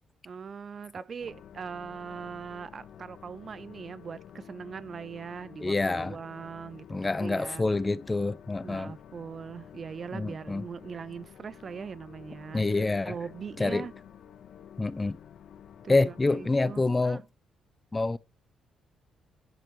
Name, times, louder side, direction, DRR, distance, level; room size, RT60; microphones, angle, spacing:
voice 1, 0.2-7.6 8.6-12.6 13.1-13.9 15.8-17.2, right 6 dB, 45° right, 0.4 m, -41 dB
sound 1, 1.2-17.0, left 9 dB, 65° left, 1.0 m, -50 dB
voice 2, 5.6-6.2 6.9-8.9 10.1-10.6 12.5-13.1 13.6-13.8 14.8-15.2 15.9-17.2 17.9-18.2, left 3 dB, 20° left, 0.6 m, -27 dB
10.5 x 5.9 x 4.6 m
cardioid pair, 90°, 0 cm